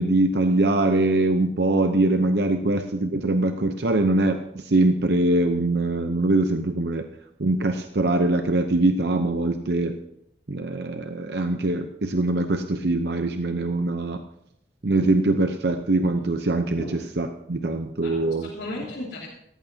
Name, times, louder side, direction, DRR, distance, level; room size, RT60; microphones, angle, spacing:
voice 1, 0.0-7.1 7.4-10.0 10.5-14.2 14.8-16.8 17.2-18.5, right 2 dB, 70° right, 6 dB, 0.8 m, -23 dB
voice 2, 18.0-19.3, left 1 dB, 85° left, -9 dB, 3.7 m, -36 dB
17.0 x 14.5 x 2.8 m, 0.76 s
head